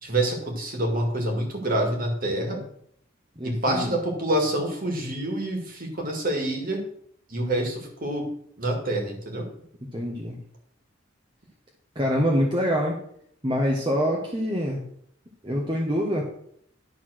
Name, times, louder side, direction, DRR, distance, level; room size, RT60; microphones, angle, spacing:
voice 1, 0.0-2.6 3.4-6.8 7.3-8.3 8.6-9.5, right 1 dB, 45° right, 2 dB, 2.1 m, -27 dB
voice 2, 3.4-3.9 9.9-10.4 11.9-13.0 13.4-14.8 15.4-16.2, equal, 20° right, -2 dB, 1.1 m, -25 dB
11.0 x 4.1 x 6.3 m, 0.68 s
head